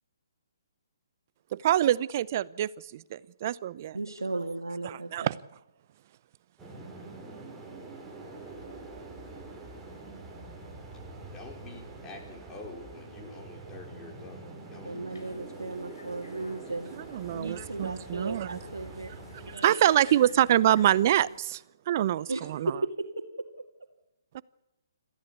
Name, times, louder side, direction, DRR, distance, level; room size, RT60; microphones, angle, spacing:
voice 1, 1.5-4.0 4.8-5.4 16.9-18.6 19.6-22.7 24.3-24.4, right 12 dB, 45° right, 20 dB, 0.7 m, -26 dB
voice 2, 3.9-5.3 14.8-16.9 17.3-19.1 19.5-19.7 22.1-23.1, right 2 dB, 90° right, 0 dB, 2.1 m, -35 dB
sound 1, 6.6-19.6, right 3 dB, 10° right, 4.7 m, -45 dB
voice 3, 11.2-14.9, left 3 dB, 20° left, 2 dB, 4.8 m, -47 dB
sound 2, 15.1-21.4, left 2 dB, 85° left, 4.9 m, -49 dB
26.5 x 14.5 x 8.4 m, 0.98 s
figure-of-eight pair, 140°, 2 cm